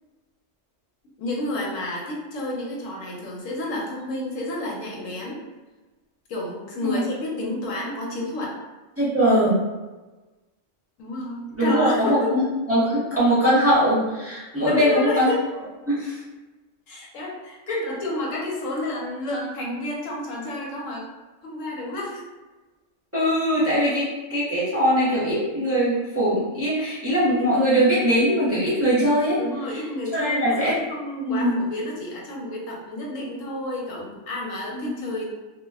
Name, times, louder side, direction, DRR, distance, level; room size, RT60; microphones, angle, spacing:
voice 1, 1.2-5.4 6.3-8.6 11.0-12.3 14.6-15.4 16.9-21.1 21.4-22.2 29.4-35.2, left 1 dB, 85° left, -2 dB, 1.0 m, -30 dB
voice 2, 9.0-9.6 11.6-15.3 15.9-16.2 17.7-17.8 23.1-29.4 30.1-30.8 31.3-31.5 34.7-34.9, equal, 15° right, -10 dB, 0.7 m, -21 dB
2.4 x 2.1 x 3.4 m, 1.2 s
omnidirectional pair, 1.3 m